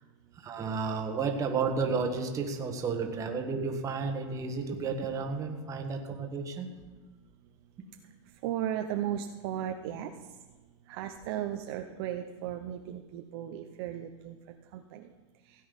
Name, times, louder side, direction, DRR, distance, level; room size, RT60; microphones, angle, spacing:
voice 1, 0.4-6.7, right 4 dB, 20° right, 4 dB, 1.5 m, -32 dB
voice 2, 8.4-10.1 10.9-14.4 14.7-15.0, right 11 dB, 50° right, 4 dB, 0.8 m, -35 dB
16.0 x 8.6 x 5.4 m, 1.2 s
supercardioid pair, 155°, 17 cm